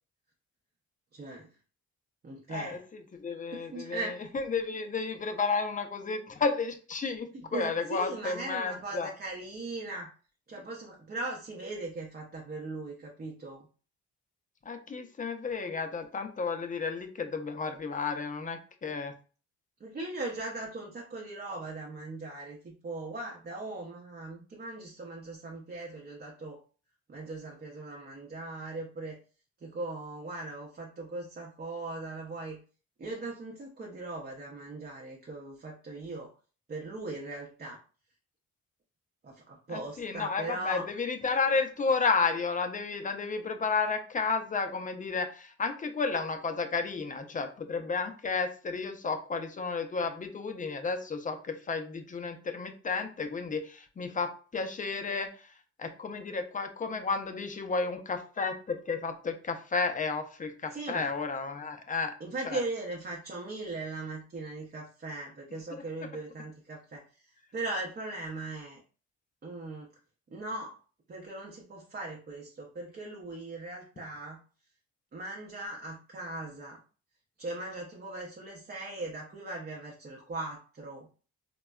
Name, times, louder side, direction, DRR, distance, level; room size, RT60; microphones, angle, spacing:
voice 1, 1.1-1.5 2.2-2.8 3.5-4.3 7.3-10.1 10.5-13.7 19.8-26.6 27.1-29.2 29.6-32.6 33.0-36.3 36.7-37.8 39.2-40.9 60.7-61.1 62.2-68.8 69.4-69.9 70.3-70.8 71.1-74.4 75.1-76.8 77.4-81.1, right 2 dB, 30° right, -1 dB, 0.7 m, -39 dB
voice 2, 3.2-9.1 14.7-19.1 39.7-55.5 55.8-62.1 62.4-62.6 65.7-65.8, left 4 dB, 25° left, 7 dB, 0.5 m, -32 dB
3.9 x 2.2 x 2.2 m, 0.38 s
cardioid pair, 90°, 30 cm